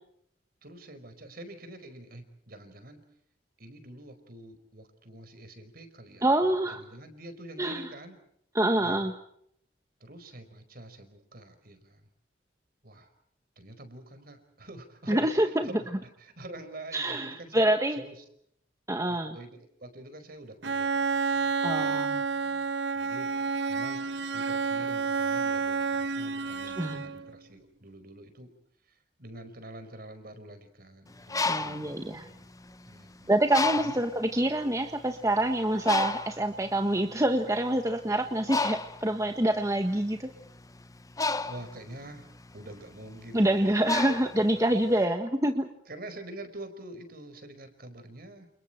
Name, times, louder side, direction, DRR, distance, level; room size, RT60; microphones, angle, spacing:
voice 1, 0.6-3.0 3.6-6.2 6.6-8.2 8.8-9.1 10.0-12.1 12.8-13.1 13.6-18.2 19.1-22.7 22.9-23.3 23.7-24.1 24.3-28.5 28.8-32.5 32.8-34.0 41.5-42.3 42.5-44.5 44.9-45.2 45.9-48.5, right 1 dB, 55° right, 9 dB, 4.9 m, -46 dB
voice 2, 6.2-6.8 7.6-7.9 8.5-9.1 15.1-15.7 16.9-18.0 18.9-19.4 21.6-22.2 26.8-27.0 31.4-32.3 33.3-40.3 43.3-45.7, right 1 dB, 20° right, 5 dB, 1.5 m, -26 dB
Bowed string instrument, 20.6-27.3, right 4 dB, 75° right, 1.1 m, -29 dB
Bird, 31.1-33.0 33.5-34.2 34.9-35.0 35.3-45.0, left 3 dB, 20° left, 1.0 m, -32 dB
29.5 x 29.0 x 4.4 m, 0.69 s
head